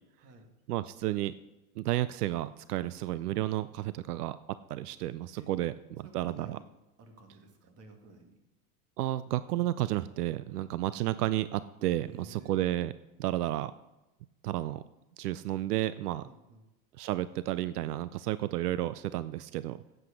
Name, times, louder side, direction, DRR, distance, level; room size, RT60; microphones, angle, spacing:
voice 1, 0.7-1.3 1.8-4.4 4.7-6.6 9.0-12.9 13.2-13.7 14.4-14.8 15.2-16.2 17.0-19.8, right 14 dB, 85° right, 16 dB, 0.6 m, -32 dB
voice 2, 6.0-6.6 7.0-8.4 10.5-10.7 12.1-12.7 16.2-16.6, right 3 dB, 35° right, 4 dB, 2.1 m, -53 dB
11.5 x 8.1 x 5.1 m, 1.0 s
supercardioid pair, 130°, 45 cm